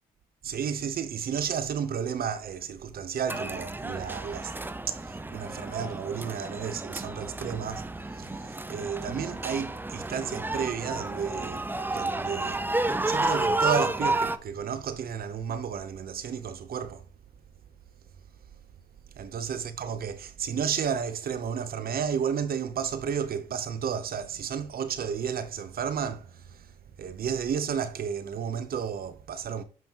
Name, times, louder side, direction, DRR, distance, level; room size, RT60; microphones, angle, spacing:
voice 1, 0.4-4.6 4.9-12.7 13.0-17.0 19.2-29.6, right 7 dB, 60° right, 1.0 m, -32 dB
sound 1, 3.3-14.4, right 2 dB, 10° right, 0.6 m, -31 dB
7.5 x 5.4 x 3.0 m
cardioid pair, 70°, 17 cm